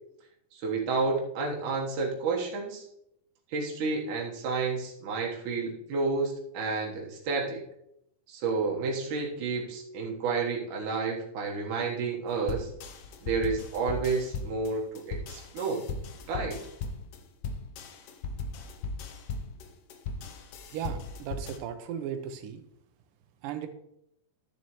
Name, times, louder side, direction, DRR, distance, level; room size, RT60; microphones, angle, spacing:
voice 1, 0.5-2.9 3.5-7.6 8.3-12.7 13.2-15.8 16.3-16.6, right 4 dB, 70° right, -1 dB, 2.8 m, -30 dB
sound 1, 12.5-21.6, left 3 dB, 80° left, 1.4 m, -38 dB
voice 2, 20.7-22.6 23.4-23.7, right 9 dB, 85° right, 8 dB, 2.4 m, -36 dB
12.5 x 7.1 x 3.1 m, 0.77 s
omnidirectional pair, 3.8 m